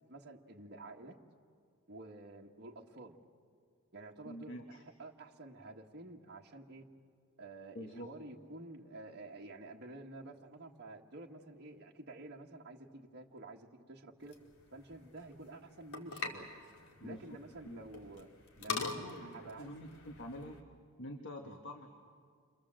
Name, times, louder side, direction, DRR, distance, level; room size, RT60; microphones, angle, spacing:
voice 1, 0.1-1.2 1.9-3.2 3.9-6.9 7.4-14.4 14.7-16.5 17.0-18.3 18.6-19.1 19.3-20.0 21.4-21.6, right 2 dB, 50° right, -1 dB, 1.6 m, -50 dB
voice 2, 4.2-4.8 7.7-8.1 17.0-17.4 17.6-17.8 18.7-20.6 21.0-21.9, left 1 dB, 55° left, 3 dB, 1.6 m, -46 dB
sound 1, 14.2-20.6, left 4 dB, 80° left, 2.8 m, -45 dB
29.5 x 24.0 x 7.6 m, 2.1 s
head